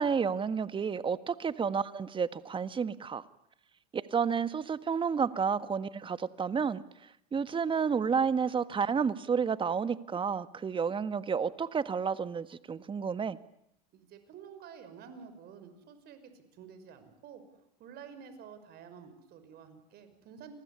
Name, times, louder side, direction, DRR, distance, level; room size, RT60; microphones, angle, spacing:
voice 1, 0.0-3.3 3.9-6.8 7.3-13.4, right 6 dB, 25° right, 14 dB, 1.5 m, -30 dB
voice 2, 13.9-20.5, right 7 dB, 50° right, 10 dB, 5.8 m, -50 dB
29.0 x 20.5 x 9.8 m, 0.77 s
hypercardioid pair, 95°, 21 cm